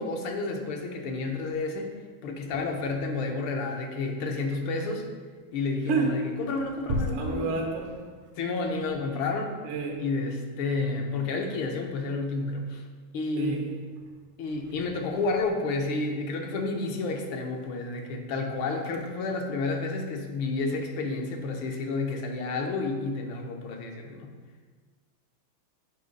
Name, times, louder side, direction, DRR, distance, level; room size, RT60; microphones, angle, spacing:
voice 1, 0.0-1.9 2.2-5.1 5.5-7.6 8.4-9.6 10.0-12.9 13.1-13.8 14.4-24.3, left 3 dB, 75° left, 3 dB, 1.5 m, -30 dB
voice 2, 6.9-7.9 9.6-10.0 13.4-13.7, right 3 dB, 90° right, 1 dB, 1.9 m, -28 dB
7.8 x 3.1 x 5.1 m, 1.5 s
omnidirectional pair, 2.4 m